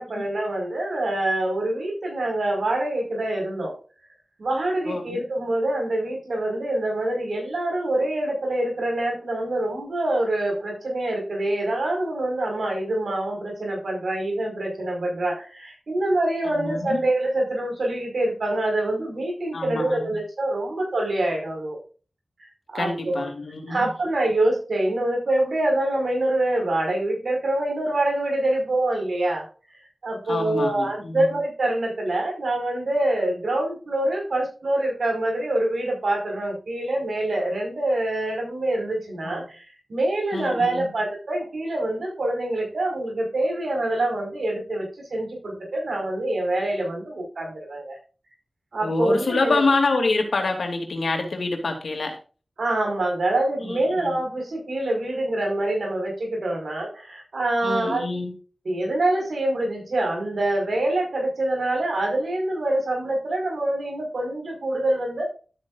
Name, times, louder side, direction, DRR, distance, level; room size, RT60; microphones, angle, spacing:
voice 1, 0.0-3.8 4.4-21.8 22.7-23.3 23.7-29.5 30.0-39.6 39.9-48.0 48.7-49.6 52.6-58.0 58.7-65.3, right 1 dB, 80° right, 1 dB, 5.2 m, -25 dB
voice 2, 4.9-5.2 16.6-17.0 19.5-20.0 22.7-23.9 30.3-31.2 39.2-39.4 40.3-40.9 48.8-52.1 53.6-54.2 57.6-58.3, left 3 dB, 80° left, 4 dB, 2.7 m, -26 dB
12.5 x 8.5 x 2.6 m, 0.36 s
wide cardioid pair, 60°, 0 cm